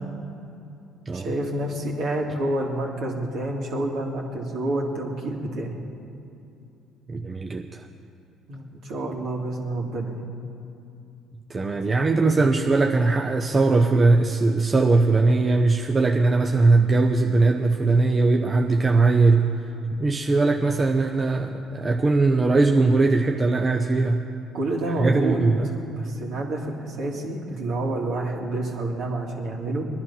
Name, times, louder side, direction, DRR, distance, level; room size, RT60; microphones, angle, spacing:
voice 1, 1.1-5.7 8.5-10.2 11.7-12.1 24.5-25.4 25.8-29.8, right 2 dB, 65° right, -1 dB, 2.6 m, -28 dB
voice 2, 7.1-7.8 11.5-19.5 19.9-24.2 25.0-25.7, right 3 dB, 30° right, 3 dB, 0.8 m, -20 dB
19.5 x 11.0 x 5.8 m, 2.7 s
supercardioid pair, 75°, 0 cm